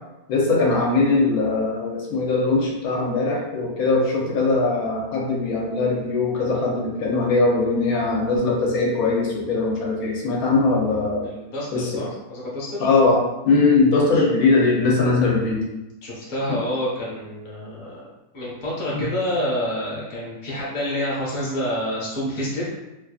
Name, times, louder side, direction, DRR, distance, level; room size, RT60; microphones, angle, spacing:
voice 1, 0.3-11.3 11.7-11.9 12.8-13.2 13.4-15.6 16.5-16.6 18.9-19.1, left 3 dB, 90° left, -2 dB, 1.2 m, -20 dB
voice 2, 11.2-12.9 14.1-14.2 16.0-18.1 18.3-22.7, equal, 40° left, -7 dB, 0.9 m, -28 dB
2.9 x 2.5 x 2.3 m, 0.99 s
omnidirectional pair, 1.5 m